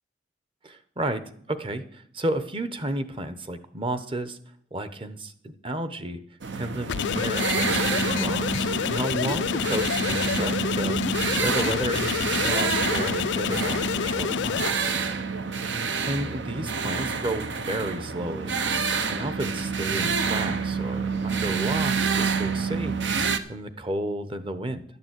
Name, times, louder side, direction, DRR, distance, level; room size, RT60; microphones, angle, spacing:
voice 1, 0.6-1.2 1.5-4.4 4.7-6.2 6.5-14.9 16.1-18.6 19.1-24.8, right 1 dB, 30° right, 11 dB, 0.9 m, -32 dB
sound 1, 6.4-23.4, right 5 dB, 70° right, 0.9 m, -28 dB
sound 2, 6.9-14.7, left 7 dB, 65° left, 0.4 m, -28 dB
12.0 x 6.9 x 8.0 m, 0.62 s
head